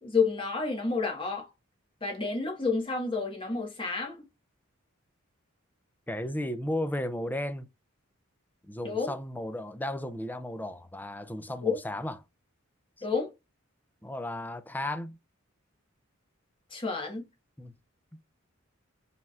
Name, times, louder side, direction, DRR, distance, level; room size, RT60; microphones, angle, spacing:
voice 1, 0.0-1.5 2.0-4.2 8.8-9.1 11.6-11.8 13.0-13.3 16.7-17.2, left 4 dB, 25° left, 1.6 m, -30 dB
voice 2, 6.1-7.7 8.6-12.2 14.0-15.2 17.6-17.7 18.1-18.2, left 1 dB, 10° left, 0.4 m, -34 dB
5.0 x 3.4 x 2.4 m
head